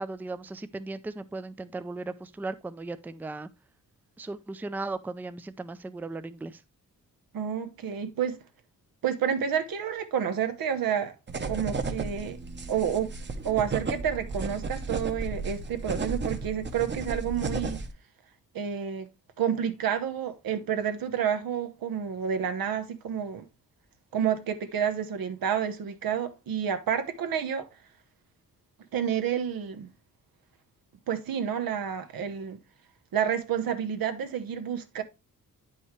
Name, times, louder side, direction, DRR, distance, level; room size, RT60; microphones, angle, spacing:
voice 1, 0.0-3.5 4.2-6.6, right 3 dB, 5° right, 0.4 m, -37 dB
voice 2, 7.3-8.4 9.0-11.2 11.5-12.4 12.7-13.1 13.4-17.8 18.5-19.1 19.4-23.5 24.1-27.7 28.9-29.9 31.1-32.6 33.1-35.0, right 8 dB, 85° right, 1.1 m, -29 dB
sound 1, 11.3-17.9, right 3 dB, 30° right, 0.9 m, -34 dB
9.6 x 5.5 x 3.2 m
wide cardioid pair, 125°, 34 cm